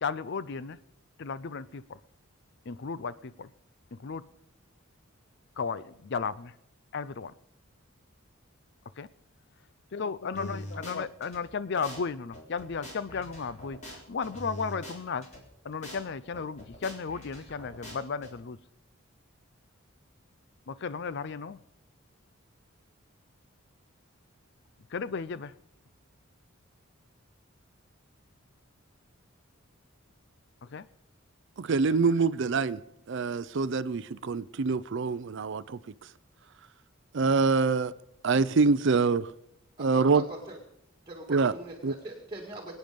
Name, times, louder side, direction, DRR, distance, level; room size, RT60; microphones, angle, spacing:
voice 1, 0.0-0.8 1.2-2.0 2.7-3.5 3.9-4.2 5.6-6.5 6.9-7.3 9.0-9.1 9.9-15.3 15.6-18.6 20.7-21.6 24.9-25.5 30.6-30.9 31.9-32.1, left 5 dB, 55° left, 0.5 m, -34 dB
sound 1, 10.3-11.4 11.8-12.0 12.3-15.4 15.8-16.0 16.3-18.3, equal, 35° left, 4.0 m, -43 dB
voice 2, 31.6-32.8 33.1-35.8 37.1-37.9 38.2-39.3 39.8-40.2 41.3-41.5 41.8-41.9, right 4 dB, 60° right, 0.5 m, -25 dB
voice 3, 39.8-40.6 41.1-42.7, right 1 dB, 20° right, 2.1 m, -42 dB
24.0 x 9.3 x 5.2 m
head